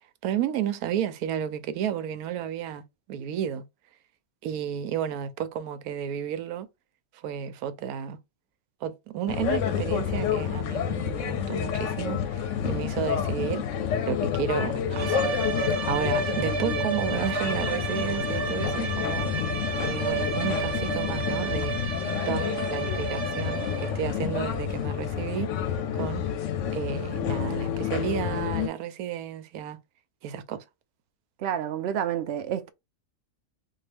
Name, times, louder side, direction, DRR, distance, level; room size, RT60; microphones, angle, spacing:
voice 1, 0.2-3.6 4.4-6.7 7.1-8.2 8.8-13.7 14.0-15.3 15.8-19.3 19.8-21.8 22.3-25.5 25.9-26.2 26.7-29.8 30.2-30.6, right 9 dB, 85° right, 1.1 m, -32 dB
sound 1, 9.3-28.7, left 8 dB, 65° left, 0.9 m, -29 dB
sound 2, 14.9-24.1, right 6 dB, 25° right, 0.7 m, -32 dB
voice 2, 31.4-32.7, right 9 dB, 60° right, 0.7 m, -29 dB
3.6 x 2.3 x 3.3 m
omnidirectional pair, 1.5 m